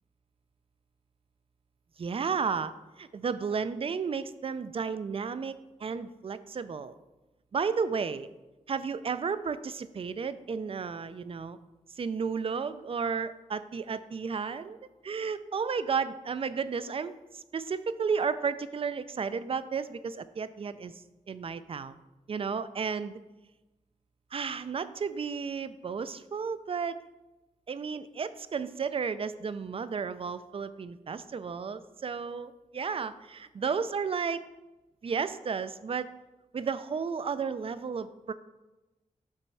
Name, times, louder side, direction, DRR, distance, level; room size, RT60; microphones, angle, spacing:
voice 1, 2.0-6.9 7.5-8.3 8.7-11.6 11.9-14.8 15.0-22.0 22.3-23.2 24.3-27.0 27.7-34.5 35.0-36.1 36.5-38.3, right 5 dB, 45° right, 13 dB, 0.4 m, -33 dB
5.4 x 4.3 x 6.1 m, 1.1 s
wide cardioid pair, 100°, 14 cm